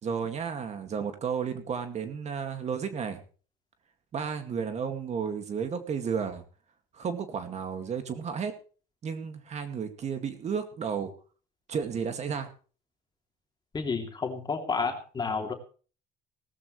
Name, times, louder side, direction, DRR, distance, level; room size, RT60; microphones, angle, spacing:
voice 1, 0.0-3.2 4.1-6.4 6.9-8.5 9.0-11.1 11.7-12.5, right 6 dB, 40° right, 7 dB, 2.1 m, -32 dB
voice 2, 13.7-15.5, left 4 dB, 25° left, 4 dB, 2.9 m, -30 dB
18.5 x 14.0 x 3.2 m, 0.39 s
cardioid pair, 140°, 18 cm